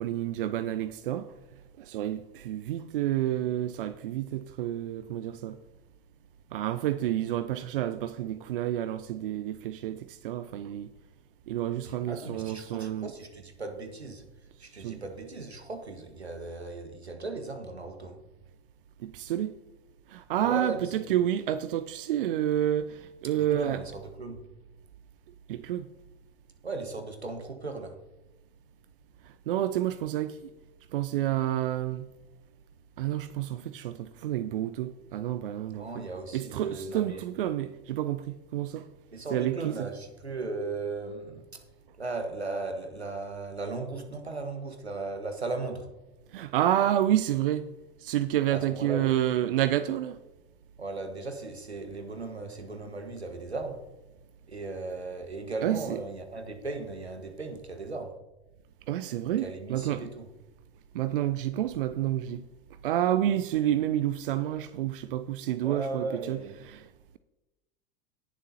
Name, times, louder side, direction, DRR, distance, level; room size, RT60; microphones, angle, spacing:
voice 1, 0.0-1.4 1.8-5.6 6.5-10.9 11.5-13.1 14.8-15.0 19.0-19.5 20.1-23.8 25.5-25.9 29.2-30.4 30.9-32.1 33.0-36.0 36.3-38.9 39.3-39.9 46.3-47.7 48.0-50.2 55.6-56.0 58.9-60.1 60.9-62.4 62.8-66.4 66.6-67.2, right 12 dB, 60° right, 0.6 m, -29 dB
voice 2, 11.9-18.2 20.4-21.1 23.5-24.4 26.6-28.0 35.7-37.3 39.1-41.6 42.0-45.9 48.5-49.2 50.8-53.8 54.5-58.2 59.4-60.3 65.6-66.6, right 3 dB, 85° right, 1.5 m, -37 dB
18.5 x 7.3 x 2.8 m
figure-of-eight pair, 85°, 32 cm